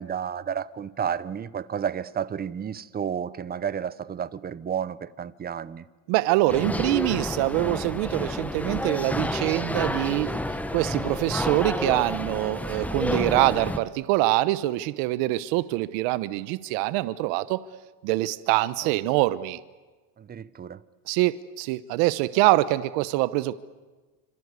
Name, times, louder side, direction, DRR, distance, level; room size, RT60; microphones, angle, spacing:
voice 1, 0.0-5.8 18.8-18.9 20.2-20.8, right 8 dB, 20° right, 0.9 m, -32 dB
voice 2, 6.1-10.4 10.7-17.6 18.0-19.6 21.1-23.5, right 18 dB, 70° right, 1.0 m, -24 dB
sound 1, 6.5-13.8, left 1 dB, 5° left, 1.0 m, -30 dB
28.0 x 26.0 x 8.2 m
supercardioid pair, 130°, 43 cm